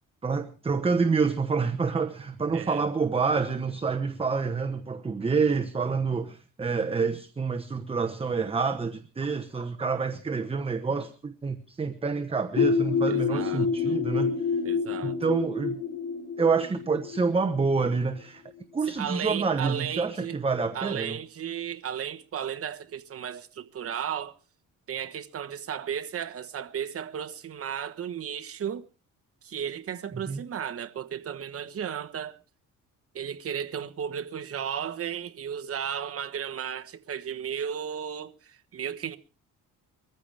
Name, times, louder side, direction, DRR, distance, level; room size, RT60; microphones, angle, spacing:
voice 1, 0.2-14.4 15.0-15.8 16.4-18.4 18.7-21.2 30.3-30.4, right 4 dB, 15° right, 1.0 m, -27 dB
voice 2, 2.5-2.8 13.1-14.0 14.6-15.2 18.9-20.4 20.7-24.4 24.9-28.9 29.4-32.4 33.1-39.2, right 8 dB, 45° right, 1.2 m, -34 dB
sound 1, 12.6-18.1, left 6 dB, 60° left, 4.4 m, -28 dB
22.5 x 14.5 x 3.5 m
cardioid pair, 130°, 33 cm